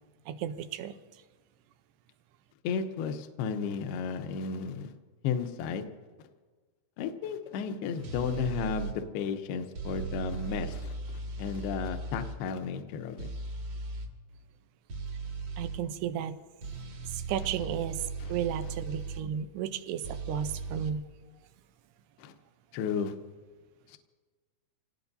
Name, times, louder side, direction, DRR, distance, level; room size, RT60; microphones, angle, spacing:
voice 1, 0.3-0.9 15.6-16.4 17.1-18.0 18.3-21.0, right 9 dB, 80° right, 10 dB, 2.7 m, -33 dB
voice 2, 2.6-4.9 5.2-5.8 7.0-13.3 18.2-18.3 22.2-22.3 22.7-23.1 23.9-24.0, left 6 dB, 75° left, 6 dB, 2.7 m, -33 dB
sound 1, 8.0-9.0 9.8-12.4 13.2-14.1 14.9-15.8 16.6-19.2 20.0-20.9, right 4 dB, 45° right, 2.4 m, -37 dB
27.5 x 18.5 x 2.7 m, 1.4 s
omnidirectional pair, 4.8 m